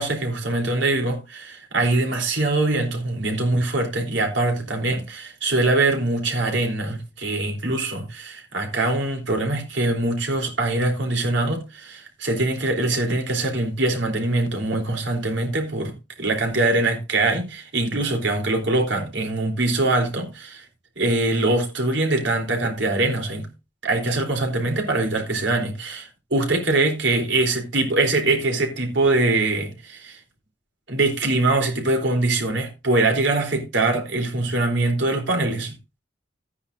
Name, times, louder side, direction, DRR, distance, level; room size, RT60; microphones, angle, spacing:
voice 1, 0.0-20.6 21.0-23.5 23.8-30.2 30.9-35.8, right 2 dB, 80° right, 3.8 m, -23 dB
14.5 x 9.8 x 2.7 m
head